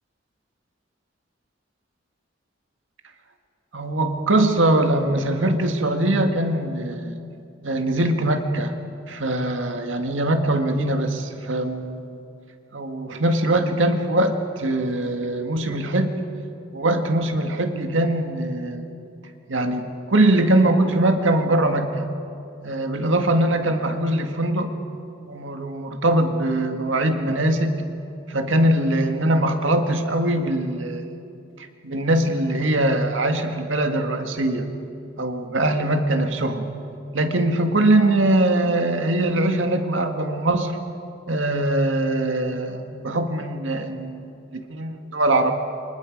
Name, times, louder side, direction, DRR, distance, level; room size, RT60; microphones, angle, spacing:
voice 1, 3.7-7.2 7.6-8.7 9.1-12.2 12.7-16.2 16.7-18.9 19.5-22.1 22.6-24.8 25.3-27.8 28.3-31.1 31.6-34.7 35.2-36.7 37.1-40.8 41.3-45.5, right 1 dB, 90° right, 5 dB, 1.9 m, -22 dB
29.5 x 25.5 x 5.3 m, 2.6 s
head